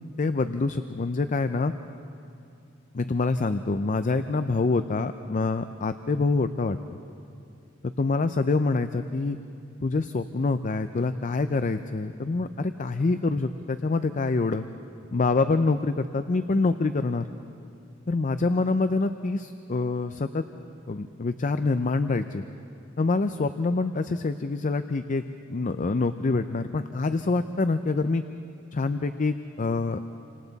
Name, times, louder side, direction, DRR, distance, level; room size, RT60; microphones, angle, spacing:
voice 1, 0.2-1.7 2.9-6.8 7.8-9.4 9.8-14.7 15.1-17.3 18.1-20.4 20.9-22.4 23.0-25.2 25.5-28.2 28.7-30.0, left 3 dB, 40° left, 10 dB, 0.5 m, -26 dB
29.0 x 26.0 x 4.0 m, 2.7 s
head